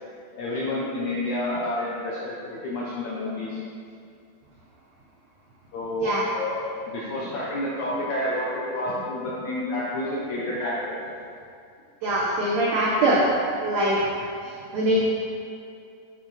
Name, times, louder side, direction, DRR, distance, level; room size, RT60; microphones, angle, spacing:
voice 1, 0.4-3.6 5.7-11.0, left 1 dB, 75° left, -6 dB, 1.7 m, -29 dB
voice 2, 12.0-13.2 13.6-14.0 14.7-15.1, right 1 dB, 85° right, -5 dB, 1.5 m, -22 dB
7.5 x 6.6 x 4.1 m, 2.5 s
omnidirectional pair, 4.4 m